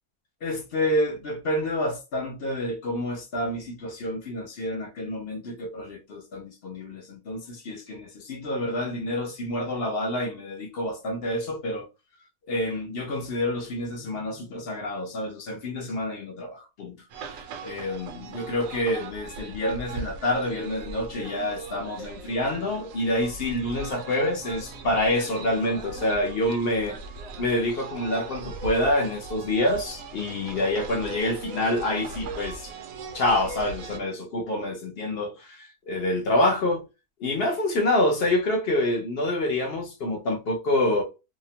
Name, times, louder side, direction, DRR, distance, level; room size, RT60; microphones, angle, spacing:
voice 1, 0.4-11.9 12.5-17.0 17.3-27.0 27.4-32.7 33.1-36.8 37.2-41.0, left 1 dB, 60° left, 0.6 m, -27 dB
sound 1, 17.1-34.0, right 4 dB, 70° right, 1.0 m, -39 dB
2.8 x 2.1 x 2.7 m
omnidirectional pair, 1.6 m